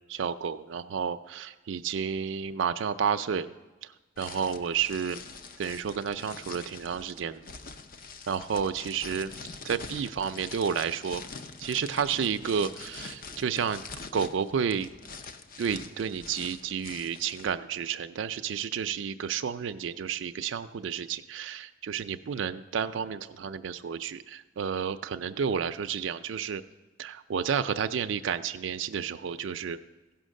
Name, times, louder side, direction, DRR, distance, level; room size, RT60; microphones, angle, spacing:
voice 1, 0.1-3.5 3.8-3.9 4.2-5.2 5.6-7.5 8.3-11.2 11.6-13.8 14.1-14.9 15.6-26.6 27.0-29.8, right 7 dB, 75° right, 8 dB, 0.4 m, -31 dB
sound 1, 4.2-17.5, left 4 dB, 50° left, 0.6 m, -44 dB
15.0 x 5.8 x 6.4 m, 1.2 s
head